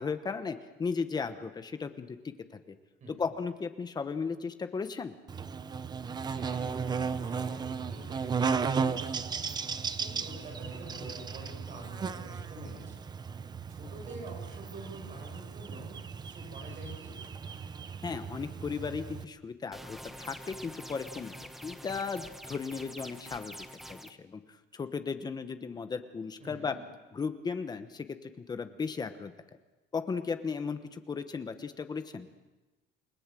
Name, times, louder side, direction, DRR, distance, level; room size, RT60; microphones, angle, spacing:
voice 1, 0.0-2.3 2.7-2.8 3.2-5.1 18.0-21.3 21.6-24.4 24.7-26.7 27.1-29.3 29.9-32.3, left 5 dB, 20° left, 9 dB, 1.1 m, -36 dB
voice 2, 3.0-3.3 6.2-9.3 10.0-13.1 13.7-17.2 26.4-26.8, right 1 dB, 40° right, 1 dB, 7.4 m, -47 dB
Buzz, 5.3-19.2, right 6 dB, 20° right, 0.7 m, -35 dB
sound 1, 19.7-24.1, equal, ahead, 1.0 m, -46 dB
29.0 x 19.0 x 7.6 m, 1.2 s
cardioid pair, 175°, 19 cm